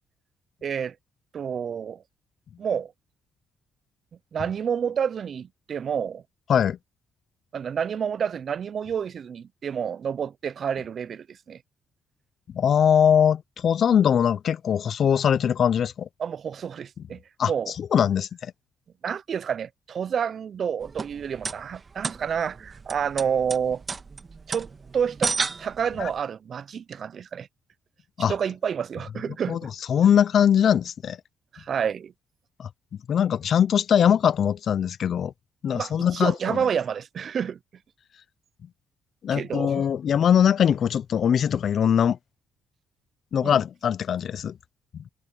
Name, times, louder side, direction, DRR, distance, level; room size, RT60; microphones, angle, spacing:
voice 1, 0.6-1.0 1.3-2.0 2.6-2.9 4.3-6.2 7.5-11.6 16.2-17.7 19.0-23.8 24.5-24.7 24.9-27.5 28.3-29.7 31.5-32.1 35.7-37.6 39.3-39.9 43.4-43.6, right 7 dB, 55° right, 0.4 m, -29 dB
voice 2, 12.5-16.1 17.4-17.5 17.8-18.5 26.0-26.1 28.2-28.3 29.5-29.6 29.9-31.2 32.6-32.7 33.1-35.3 35.6-36.6 39.2-42.2 43.3-44.5, left 8 dB, 60° left, 0.4 m, -21 dB
sound 1, 20.8-26.2, right 4 dB, 35° right, 1.7 m, -33 dB
cardioid pair, 90°, 0 cm